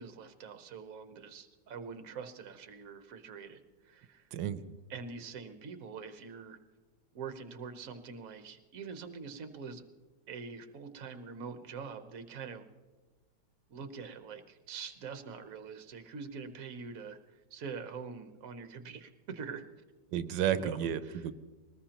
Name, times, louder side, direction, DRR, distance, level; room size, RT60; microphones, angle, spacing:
voice 1, 0.0-4.3 4.9-6.6 7.1-9.8 10.3-12.7 13.7-19.7 20.5-20.8 21.0-21.3, right 5 dB, 55° right, 8 dB, 1.4 m, -44 dB
voice 2, 4.3-4.8 20.1-21.3, right 10 dB, 85° right, 11 dB, 1.3 m, -32 dB
21.5 x 19.5 x 3.0 m, 1.2 s
omnidirectional pair, 1.9 m